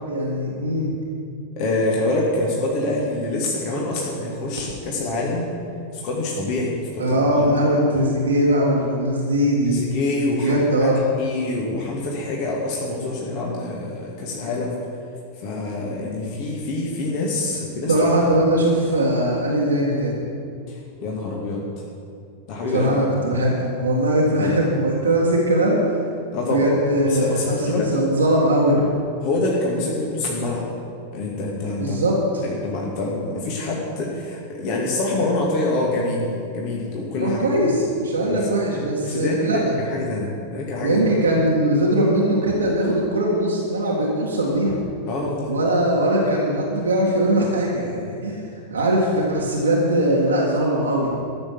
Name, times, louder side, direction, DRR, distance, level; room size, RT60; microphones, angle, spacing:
voice 1, 0.1-0.9 7.0-9.8 10.4-11.0 16.2-16.4 17.9-20.2 22.7-26.0 26.4-28.8 31.8-32.4 37.2-39.7 40.8-44.7 45.5-48.4 48.7-51.2, right 1 dB, 75° right, -3 dB, 1.8 m, -20 dB
voice 2, 1.6-5.5 5.9-7.5 9.7-10.9 11.2-14.8 15.4-17.9 20.7-21.8 22.5-23.4 24.4-24.7 26.3-26.8 27.0-28.0 29.2-30.7 31.1-32.0 32.4-37.4 38.2-38.4 38.7-38.8 39.0-41.0 45.1-45.5, left 2 dB, 45° left, -3 dB, 2.2 m, -26 dB
14.0 x 6.9 x 7.5 m, 2.4 s
figure-of-eight pair, 90°, 0 cm